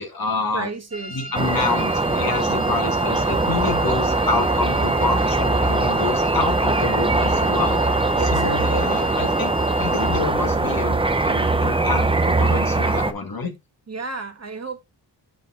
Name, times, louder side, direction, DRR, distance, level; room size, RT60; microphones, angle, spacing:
voice 1, 0.0-0.7 1.1-7.8 8.3-11.0 11.2-13.5, left 3 dB, 55° left, 1.9 m, -27 dB
voice 2, 0.5-1.7 2.6-3.0 8.2-9.3 13.9-14.8, right 4 dB, 35° right, 1.3 m, -33 dB
sound 1, 0.9-10.2, equal, 55° right, 1.3 m, -35 dB
sound 2, 1.3-13.1, right 2 dB, 10° right, 0.7 m, -21 dB
7.2 x 6.3 x 3.7 m
wide cardioid pair, 140°, 43 cm